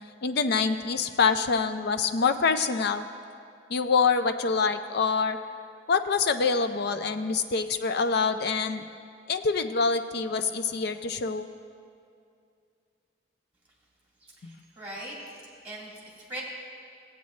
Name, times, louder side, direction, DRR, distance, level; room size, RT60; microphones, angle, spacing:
voice 1, 0.2-3.1 3.7-5.4 5.9-8.9 9.3-11.5, left 5 dB, 60° left, 9 dB, 0.5 m, -25 dB
voice 2, 14.2-15.2 15.6-16.4, right 1 dB, 10° right, -5 dB, 2.2 m, -41 dB
16.0 x 8.2 x 3.2 m, 2.4 s
head